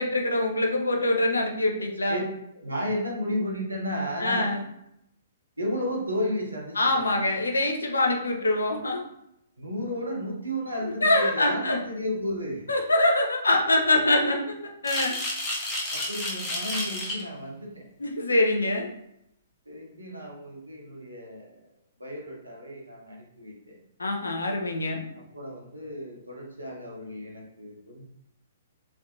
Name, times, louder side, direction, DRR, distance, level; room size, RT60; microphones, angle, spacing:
voice 1, 0.0-2.2 4.2-4.6 6.8-9.0 11.0-11.8 12.7-15.2 18.0-18.9 24.0-25.0, left 2 dB, 75° left, 2 dB, 0.5 m, -24 dB
voice 2, 2.6-4.5 5.6-7.0 9.6-12.6 15.9-17.9 19.7-21.7 22.0-23.8 25.1-28.0, equal, 85° right, -2 dB, 0.7 m, -33 dB
sound 1, 14.8-17.2, left 1 dB, 15° left, 0.6 m, -31 dB
2.5 x 2.0 x 2.7 m, 0.79 s
figure-of-eight pair, 120°, 0 cm